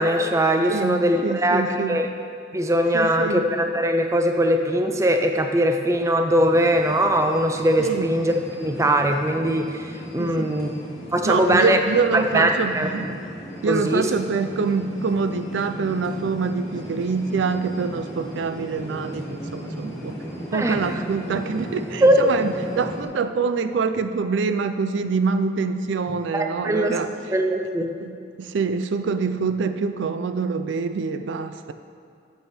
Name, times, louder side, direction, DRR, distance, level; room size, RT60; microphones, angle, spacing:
voice 1, 0.0-2.0 2.5-8.3 8.6-10.7 11.1-11.8 12.1-12.9 13.7-14.1 20.5-21.0 22.0-22.3 26.3-26.9 27.3-27.9, right 1 dB, 15° right, 5 dB, 0.4 m, -21 dB
voice 2, 0.7-2.0 2.9-3.4 7.8-8.1 10.2-10.5 11.2-13.2 13.6-27.1 27.8-31.7, right 5 dB, 75° right, 10 dB, 0.4 m, -25 dB
sound 1, 6.3-23.0, equal, 15° left, 1.8 m, -36 dB
6.8 x 6.7 x 5.9 m, 2.3 s
head